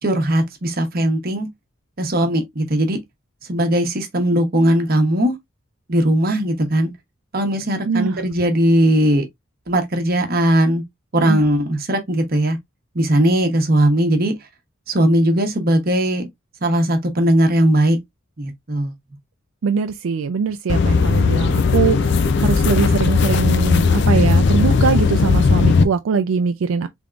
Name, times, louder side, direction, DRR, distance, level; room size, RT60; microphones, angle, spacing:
voice 1, 0.0-1.5 2.0-3.0 3.5-5.3 5.9-6.9 7.3-9.2 9.7-10.8 11.1-12.6 12.9-14.3 14.9-16.3 16.6-18.0 18.4-18.9, right 1 dB, 45° right, 1.0 m, -18 dB
voice 2, 7.9-8.2 11.2-11.4 19.6-26.9, right 5 dB, 75° right, 0.4 m, -22 dB
sound 1, 20.7-25.8, left 4 dB, 55° left, 0.4 m, -16 dB
3.5 x 3.5 x 2.4 m
head